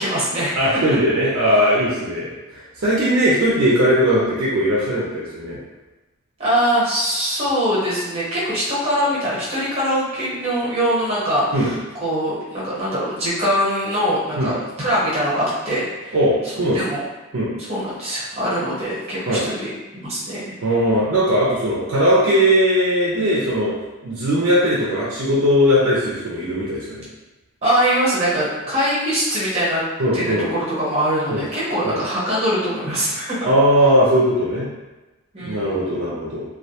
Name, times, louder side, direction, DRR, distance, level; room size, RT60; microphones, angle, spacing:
voice 1, 0.0-1.3 6.4-16.2 16.7-17.1 17.7-20.4 27.6-29.8 30.1-33.5 35.3-35.8, equal, 30° right, -8 dB, 0.9 m, -22 dB
voice 2, 0.6-5.6 11.5-11.7 14.4-14.5 16.1-16.8 17.3-17.5 19.3-19.4 20.6-23.7 24.0-27.1 30.0-30.5 31.3-31.4 31.8-32.0 33.4-34.7 35.4-36.4, equal, 70° right, -6 dB, 0.5 m, -19 dB
2.3 x 2.1 x 2.8 m, 1.1 s
head